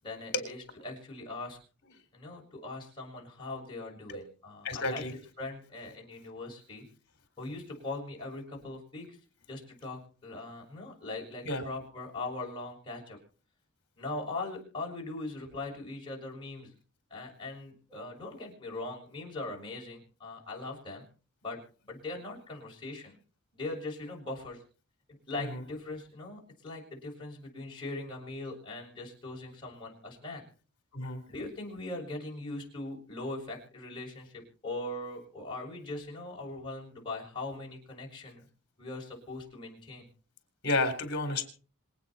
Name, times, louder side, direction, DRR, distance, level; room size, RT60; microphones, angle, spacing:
voice 1, 0.0-1.6 2.1-6.8 7.4-9.2 9.5-13.2 14.0-16.7 17.1-21.0 21.4-21.6 21.9-23.2 23.5-24.6 25.3-30.4 31.3-38.4 38.8-40.1, left 2 dB, 20° left, -3 dB, 6.5 m, -40 dB
voice 2, 4.6-5.1 11.5-11.6 25.4-25.6 30.9-31.2 40.6-41.4, left 2 dB, 50° left, 7 dB, 4.0 m, -31 dB
26.5 x 9.2 x 4.4 m, 0.39 s
head